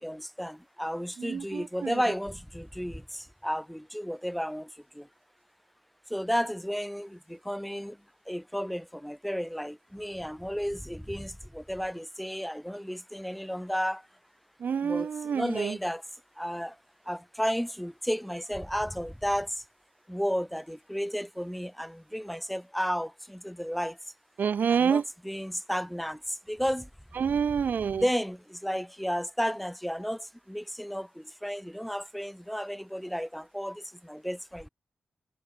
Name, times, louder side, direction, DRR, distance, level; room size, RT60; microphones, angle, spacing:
voice 1, 0.0-4.7 4.9-5.1 6.1-8.0 8.3-14.0 14.8-16.0 16.4-16.7 17.1-19.5 20.1-24.0 24.7-26.9 28.0-34.7, equal, ahead, 1.2 m, -33 dB
voice 2, 1.2-1.9 14.6-15.7 24.4-25.0 27.2-28.0, right 7 dB, 70° right, 0.7 m, -27 dB
wide cardioid pair, 100°, 3 cm